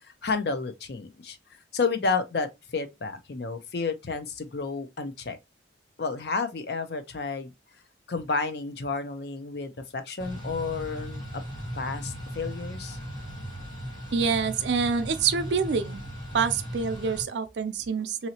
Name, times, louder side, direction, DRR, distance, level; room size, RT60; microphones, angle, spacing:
voice 1, 0.0-1.4 1.7-5.4 6.0-7.5 8.1-11.4 11.7-13.0, left 4 dB, 65° left, 0.5 m, -31 dB
sound 1, 10.2-17.2, equal, 25° left, 1.7 m, -38 dB
voice 2, 14.1-16.0 16.3-18.3, right 5 dB, 75° right, 0.5 m, -26 dB
3.0 x 2.8 x 2.8 m
head